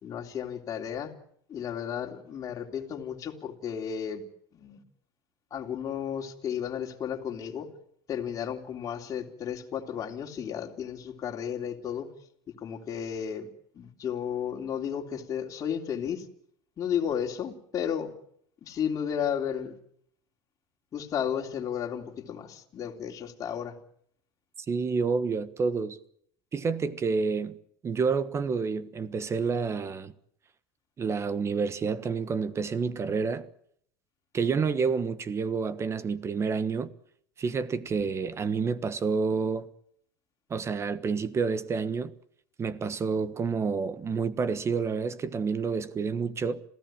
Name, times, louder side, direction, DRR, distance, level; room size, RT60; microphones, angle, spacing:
voice 1, 0.0-1.1 1.5-4.2 4.5-4.8 5.5-7.7 8.1-12.1 12.6-13.5 13.7-16.2 16.8-18.1 18.6-19.8 20.9-23.7 38.0-38.1, left 8 dB, 35° left, 3.3 m, -33 dB
voice 2, 24.7-26.0 26.5-27.6 27.8-30.1 31.0-33.5 34.3-36.9 37.4-39.7 40.5-42.1 42.6-46.6, right 5 dB, 25° right, 1.3 m, -29 dB
27.0 x 16.0 x 9.0 m
supercardioid pair, 120°, 10 cm